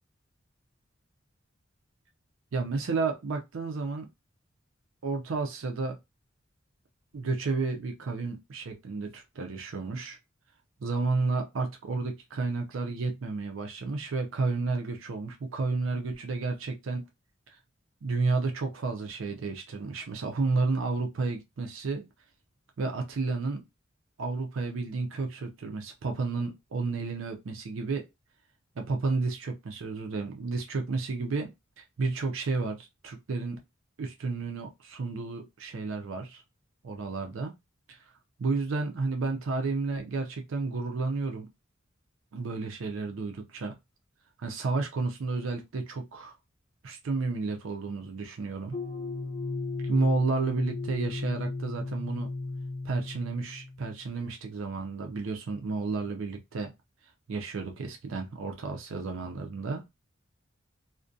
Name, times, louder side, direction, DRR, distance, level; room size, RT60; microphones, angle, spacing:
voice 1, 2.5-4.1 5.0-6.0 7.1-10.2 10.8-17.0 18.0-22.1 22.8-23.6 24.2-28.1 28.8-31.5 31.8-33.6 34.0-36.4 36.8-37.6 37.9-38.1 38.4-41.5 42.3-43.8 44.4-46.3 46.8-48.8 49.8-52.3 52.8-56.7 57.3-59.8, right 3 dB, 80° right, 0.5 m, -31 dB
sound 1, 48.7-53.9, left 3 dB, 35° left, 0.4 m, -35 dB
2.4 x 2.1 x 2.5 m
head